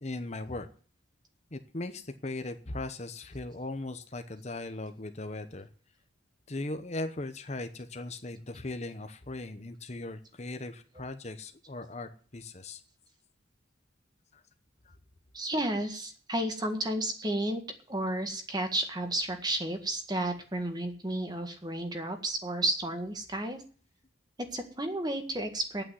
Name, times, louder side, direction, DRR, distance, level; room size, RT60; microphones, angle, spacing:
voice 1, 0.0-0.7 1.5-5.7 6.5-12.8 14.3-14.4 14.8-15.0, left 2 dB, 35° left, 8 dB, 0.9 m, -38 dB
voice 2, 15.3-17.6 17.9-23.6 24.5-25.8, right 1 dB, 20° right, 6 dB, 1.7 m, -32 dB
9.0 x 8.8 x 9.4 m, 0.42 s
head